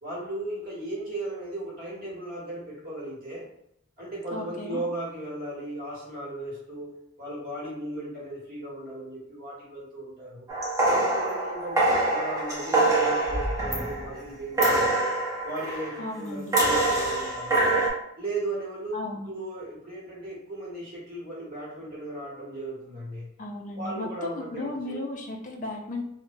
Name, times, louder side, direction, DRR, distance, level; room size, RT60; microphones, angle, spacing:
voice 1, 0.0-3.5 4.0-6.9 7.2-10.5 11.0-15.0 15.4-17.6 18.2-23.3 23.7-25.0, right 1 dB, 50° right, -6 dB, 1.2 m, -36 dB
voice 2, 4.3-4.8 16.0-16.5 18.9-19.3 23.4-26.0, left 2 dB, 40° left, 1 dB, 0.4 m, -35 dB
sound 1, 10.5-14.2 14.6-16.0 16.5-17.9, right 2 dB, 15° right, 0.7 m, -24 dB
3.0 x 2.1 x 2.6 m, 0.76 s
head